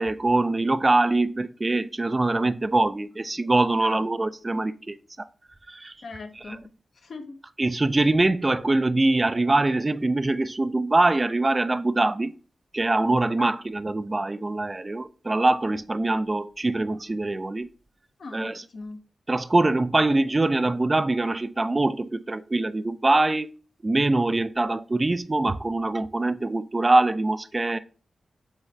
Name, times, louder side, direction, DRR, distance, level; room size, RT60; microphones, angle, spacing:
voice 1, 0.0-5.0 5.7-5.9 6.4-6.6 7.6-12.4 12.7-17.7 18.3-18.6 19.3-23.5 23.8-27.8, right 2 dB, 35° right, 0.3 m, -23 dB
voice 2, 6.0-6.7 7.0-7.4 13.4-13.5 18.2-19.0, left 3 dB, 70° left, 0.7 m, -39 dB
4.7 x 3.3 x 3.1 m
cardioid pair, 45°, 0 cm